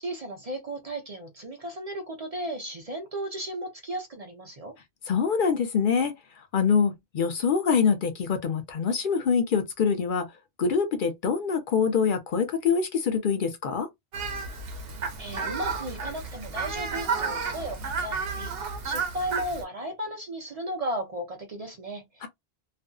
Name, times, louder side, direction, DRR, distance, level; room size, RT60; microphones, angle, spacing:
voice 1, 0.0-4.8 15.2-18.5 18.8-22.3, right 1 dB, 45° right, 0.6 m, -35 dB
voice 2, 5.1-10.3 10.6-13.9 22.2-22.3, left 6 dB, 60° left, 0.6 m, -25 dB
Fowl, 14.1-19.6, right 5 dB, 70° right, 0.9 m, -32 dB
2.6 x 2.4 x 2.2 m
omnidirectional pair, 1.0 m